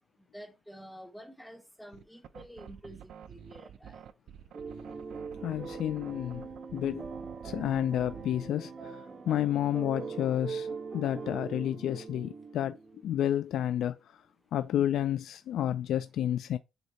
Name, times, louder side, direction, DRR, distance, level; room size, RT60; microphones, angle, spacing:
voice 1, 0.3-4.0, equal, ahead, 0.8 m, -49 dB
sound 1, 1.9-8.6, right 9 dB, 65° right, 0.5 m, -49 dB
sound 2, 4.5-13.3, right 5 dB, 30° right, 1.6 m, -42 dB
voice 2, 5.4-7.1 7.4-10.7 10.9-12.8 13.0-14.0 14.5-16.6, left 11 dB, 70° left, 0.3 m, -30 dB
8.1 x 2.8 x 4.2 m
cardioid pair, 160°, 0 cm